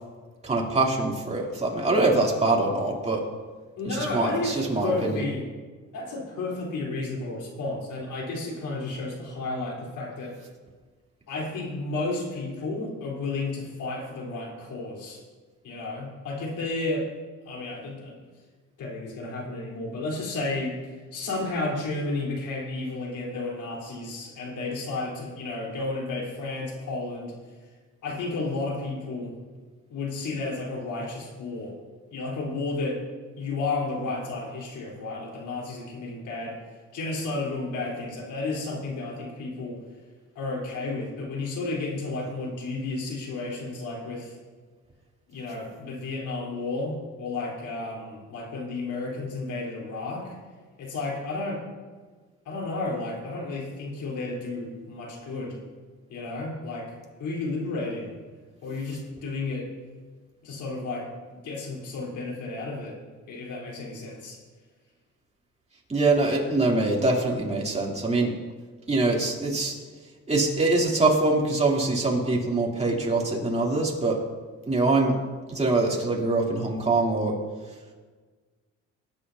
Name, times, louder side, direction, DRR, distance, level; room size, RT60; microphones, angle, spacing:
voice 1, 0.4-3.2 3.8-5.3 65.9-68.3 68.9-69.7 70.3-74.2 74.7-75.2 75.5-77.4, right 2 dB, 20° right, -3 dB, 3.2 m, -24 dB
voice 2, 3.8-5.4 5.9-10.3 11.3-15.2 15.6-17.1 17.5-18.2 18.8-27.3 28.0-29.3 29.9-31.8 32.1-33.0 33.4-36.6 36.9-39.8 40.4-44.4 45.3-50.4 50.8-51.6 52.5-55.6 56.1-58.1 58.6-59.7 60.4-63.0 63.3-64.4, left 2 dB, 80° left, -3 dB, 4.1 m, -32 dB
20.0 x 10.5 x 2.8 m, 1.4 s
cardioid pair, 90°, 30 cm